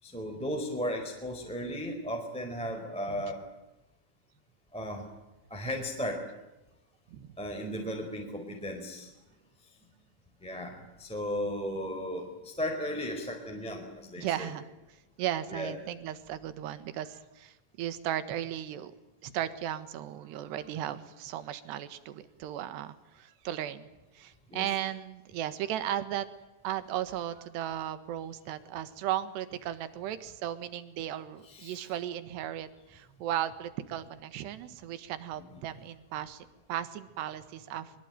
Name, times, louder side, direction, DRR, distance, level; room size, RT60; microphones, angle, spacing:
voice 1, 0.0-3.4 4.7-5.1 5.5-6.2 7.4-9.1 10.4-10.7 11.0-14.5 15.5-15.8 24.5-24.8 31.4-32.0 35.4-35.6, equal, ahead, 2 dB, 3.7 m, -35 dB
voice 2, 14.2-14.7 15.2-18.9 19.2-23.9 24.1-26.3 26.6-37.9, right 11 dB, 70° right, 12 dB, 3.4 m, -36 dB
24.0 x 23.5 x 9.2 m, 1.0 s
omnidirectional pair, 5.5 m